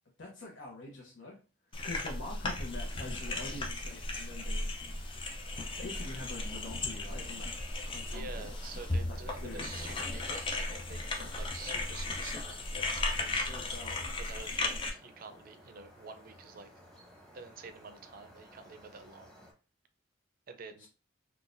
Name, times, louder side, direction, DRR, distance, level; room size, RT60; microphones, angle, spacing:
voice 1, 0.2-1.4 1.6-5.0 5.5-7.5 7.9-8.5 9.1-9.7 13.3-14.0 20.8-20.9, left 2 dB, 75° left, -2 dB, 0.8 m, -45 dB
sound 1, 1.7-14.9, left 2 dB, 25° left, 0.5 m, -36 dB
sound 2, 5.5-19.5, equal, 5° left, 0.9 m, -57 dB
voice 2, 8.1-12.9 13.2-13.5 14.2-16.7 17.3-19.3 20.5-20.9, right 4 dB, 50° right, 8 dB, 0.4 m, -48 dB
3.8 x 2.3 x 2.5 m, 0.34 s
head